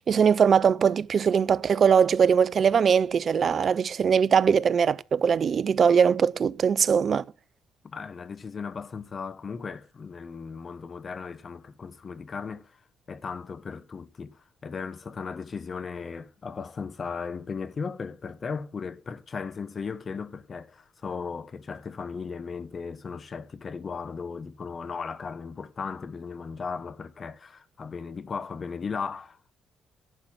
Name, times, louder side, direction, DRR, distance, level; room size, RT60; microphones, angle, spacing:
voice 1, 0.1-7.2, right 7 dB, 55° right, 0.6 m, -21 dB
voice 2, 7.8-12.7 13.1-29.6, left 5 dB, 45° left, 1.1 m, -36 dB
11.0 x 6.7 x 7.4 m
cardioid pair, 75°, 0 cm